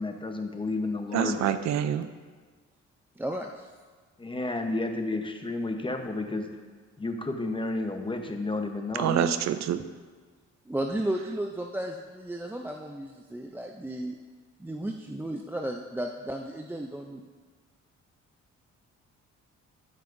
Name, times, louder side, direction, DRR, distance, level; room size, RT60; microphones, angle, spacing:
voice 1, 0.0-1.4 4.2-6.5 7.0-9.2, left 2 dB, 15° left, 5 dB, 0.8 m, -31 dB
voice 2, 1.1-2.1 9.0-9.8, right 10 dB, 65° right, 11 dB, 0.5 m, -26 dB
voice 3, 3.2-3.6 9.0-9.4 10.7-14.2 14.6-17.2, right 1 dB, 5° right, 2 dB, 0.4 m, -34 dB
15.0 x 5.7 x 2.6 m, 1.5 s
cardioid pair, 90°, 30 cm